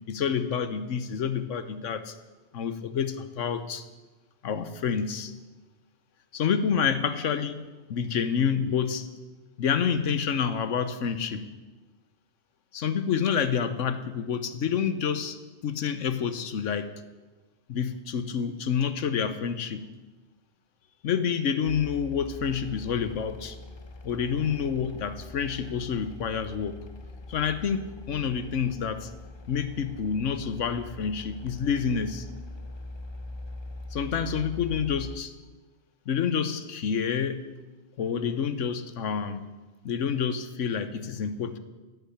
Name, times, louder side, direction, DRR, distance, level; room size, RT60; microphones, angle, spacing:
voice 1, 0.1-2.1 2.5-3.9 4.4-5.3 6.3-7.6 7.9-9.1 9.6-11.5 12.7-15.4 15.6-16.9 17.7-19.9 21.0-23.6 24.0-26.8 27.3-29.1 29.5-32.3 33.9-35.3 36.1-37.4 38.0-39.5 39.8-41.6, left 7 dB, 80° left, 10 dB, 1.2 m, -28 dB
sound 1, 21.7-35.2, left 2 dB, 35° left, 0.5 m, -42 dB
11.5 x 7.6 x 9.6 m, 1.2 s
omnidirectional pair, 1.3 m